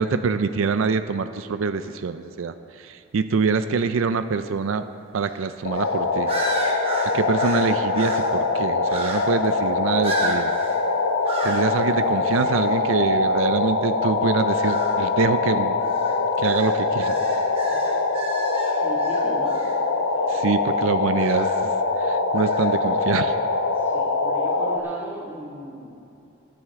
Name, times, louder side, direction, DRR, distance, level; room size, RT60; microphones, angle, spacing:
voice 1, 0.0-4.9 5.1-6.3 7.0-10.5 11.4-15.8 16.4-17.1 20.3-21.7 22.0-23.3, right 5 dB, 80° right, 10 dB, 0.4 m, -25 dB
sound 1, 5.2-5.4 5.7-5.9 6.3-8.4 8.9-9.5 10.0-10.8 11.2-11.7 12.3-12.6 14.4-15.0 15.8-19.8 21.2-21.6 22.3-22.7, right 2 dB, 25° right, 1.3 m, -33 dB
sound 2, 5.6-24.8, left 3 dB, 80° left, 0.8 m, -23 dB
voice 2, 18.8-19.7 20.1-20.5 23.7-25.9, right 1 dB, 10° right, -6 dB, 2.1 m, -38 dB
22.0 x 7.8 x 3.6 m, 2.7 s
head